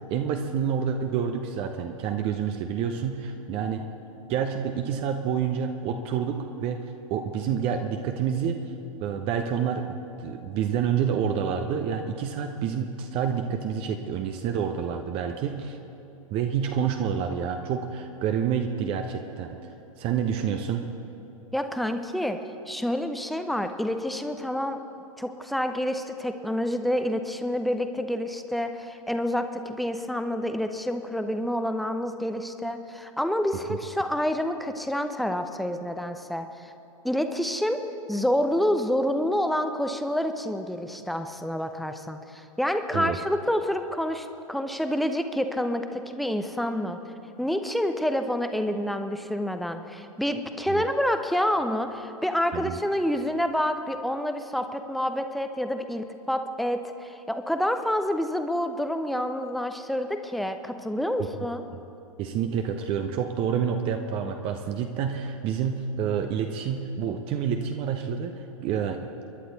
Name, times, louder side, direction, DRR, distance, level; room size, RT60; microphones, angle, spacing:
voice 1, 0.1-3.8 4.3-6.8 7.1-8.6 9.0-15.8 16.3-19.7 20.0-20.8 33.7-33.8 42.9-43.2 50.7-50.8 52.5-52.8 61.2-61.3 62.2-69.2, right 7 dB, 30° right, 5 dB, 0.9 m, -28 dB
voice 2, 21.5-22.4 22.7-24.8 25.2-36.7 37.0-37.8 38.1-47.0 47.4-61.6, equal, ahead, 7 dB, 0.8 m, -28 dB
28.5 x 11.5 x 4.1 m, 2.8 s
figure-of-eight pair, 100°, 18 cm